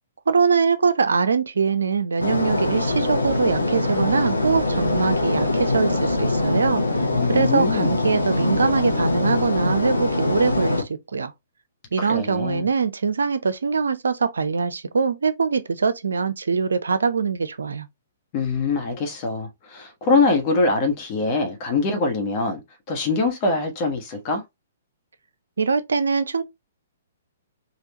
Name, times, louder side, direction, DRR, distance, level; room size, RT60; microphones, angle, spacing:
voice 1, 0.3-7.0 7.3-11.3 11.9-17.9 25.6-26.4, right 5 dB, 75° right, 0.5 m, -23 dB
sound 1, 2.2-10.8, left 2 dB, 90° left, 0.8 m, -23 dB
voice 2, 7.1-7.9 12.0-12.7 18.3-22.6 22.9-24.4, left 3 dB, 35° left, 1.0 m, -23 dB
3.5 x 2.4 x 2.8 m
figure-of-eight pair, 120°, 0 cm